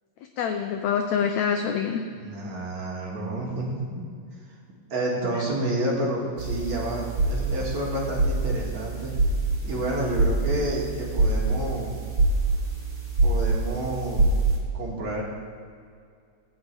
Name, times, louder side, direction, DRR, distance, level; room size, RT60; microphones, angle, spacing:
voice 1, 0.4-2.0, left 7 dB, 90° left, 5 dB, 1.5 m, -25 dB
voice 2, 2.1-4.0 4.9-9.1 9.6-12.0 13.2-14.3 14.7-15.2, right 1 dB, 55° right, -3 dB, 3.3 m, -29 dB
sound 1, 6.4-14.6, right 2 dB, 35° right, 4.2 m, -25 dB
16.0 x 6.3 x 9.0 m, 2.2 s
omnidirectional pair, 4.0 m